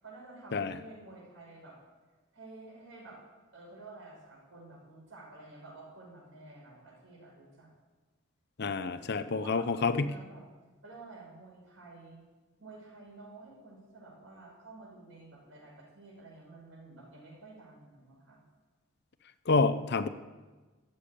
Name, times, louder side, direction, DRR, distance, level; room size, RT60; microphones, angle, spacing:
voice 1, 0.0-1.8 2.3-3.2 3.5-7.7 8.8-10.4 10.8-12.2 12.6-18.4, right 2 dB, 80° right, -2 dB, 5.9 m, -51 dB
voice 2, 8.6-10.2 19.5-20.1, left 4 dB, 60° left, 11 dB, 0.7 m, -28 dB
13.0 x 8.5 x 8.8 m, 1.3 s
head